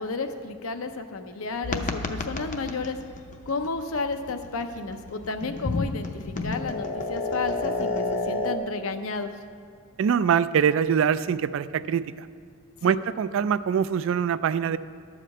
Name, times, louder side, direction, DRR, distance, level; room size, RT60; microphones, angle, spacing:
voice 1, 0.0-3.0 3.5-9.4 12.8-13.0, left 4 dB, 75° left, 8 dB, 0.7 m, -32 dB
sound 1, 1.6-8.6, left 3 dB, 35° left, 0.6 m, -31 dB
voice 2, 10.0-12.3 12.8-14.8, right 7 dB, 60° right, 15 dB, 0.3 m, -24 dB
11.5 x 5.0 x 7.6 m, 2.1 s
head